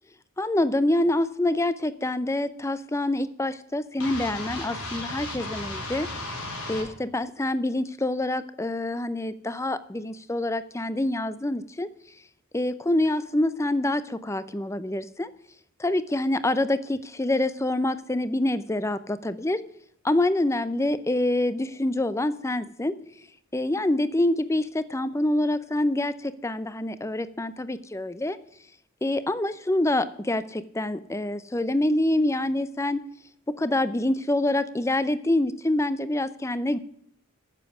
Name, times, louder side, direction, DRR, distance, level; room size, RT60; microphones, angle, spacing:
voice 1, 0.4-6.1 6.7-11.9 12.5-15.3 15.8-19.6 20.0-22.9 23.5-28.4 29.0-33.0 33.5-36.8, left 1 dB, 15° left, 14 dB, 0.5 m, -26 dB
sound 1, 4.0-6.9, left 2 dB, 80° left, 4.3 m, -35 dB
9.9 x 7.3 x 8.0 m, 0.69 s
head